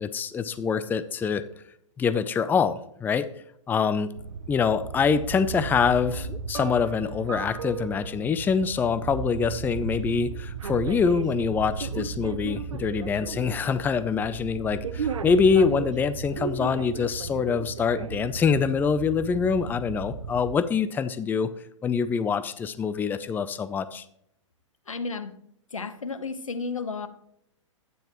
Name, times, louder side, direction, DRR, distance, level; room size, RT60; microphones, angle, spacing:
voice 1, 0.0-1.4 2.0-3.3 3.7-4.1 4.5-21.5 21.8-24.0, left 6 dB, 10° left, 14 dB, 0.5 m, -25 dB
sound 1, 4.2-20.6, right 6 dB, 75° right, 0.9 m, -35 dB
voice 2, 24.9-25.4 25.7-27.1, left 4 dB, 85° left, 11 dB, 1.0 m, -32 dB
11.5 x 9.3 x 3.0 m, 0.73 s
figure-of-eight pair, 115°, 17 cm